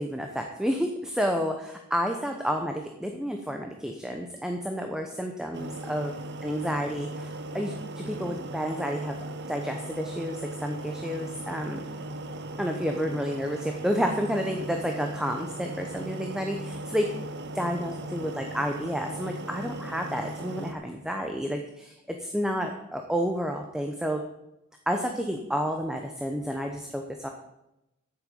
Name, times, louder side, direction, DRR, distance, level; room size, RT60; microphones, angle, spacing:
voice 1, 0.0-6.2 6.4-9.2 9.5-11.8 12.6-17.1 17.5-24.2 24.9-27.3, equal, 5° right, 3 dB, 0.8 m, -30 dB
sound 1, 5.5-20.7, right 1 dB, 50° right, 1.0 m, -38 dB
9.0 x 7.9 x 8.0 m, 0.88 s
head